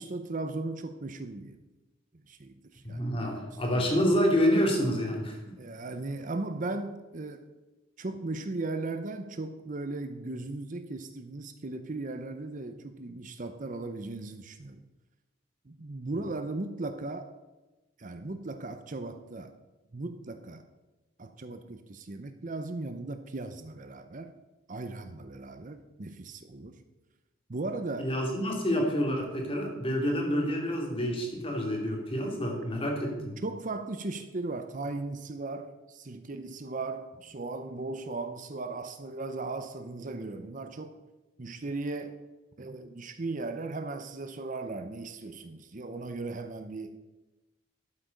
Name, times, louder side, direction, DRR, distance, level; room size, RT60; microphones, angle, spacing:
voice 1, 0.0-1.6 2.3-3.3 3.7-3.9 5.6-7.5 8.0-14.8 15.7-17.3 18.0-19.6 19.9-20.6 21.2-24.3 24.7-26.8 27.5-28.1 33.2-41.0 41.4-42.2 42.6-47.0, right 2 dB, 40° right, 8 dB, 0.7 m, -37 dB
voice 2, 2.8-5.4 28.0-33.4, equal, 25° left, 1 dB, 2.5 m, -28 dB
12.0 x 8.3 x 5.2 m, 1.1 s
head